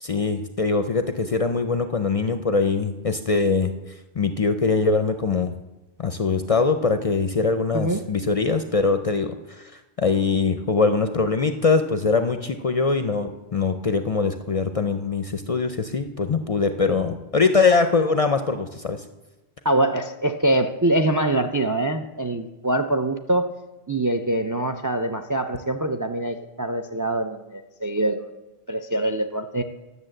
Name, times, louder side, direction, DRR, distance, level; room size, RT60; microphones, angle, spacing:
voice 1, 0.0-3.7 4.2-5.5 6.0-19.0, left 4 dB, 45° left, 8 dB, 0.5 m, -22 dB
voice 2, 19.6-23.5 23.9-28.3 28.7-29.6, right 1 dB, 30° right, 7 dB, 0.3 m, -24 dB
11.0 x 6.9 x 7.6 m, 1.1 s
omnidirectional pair, 1.1 m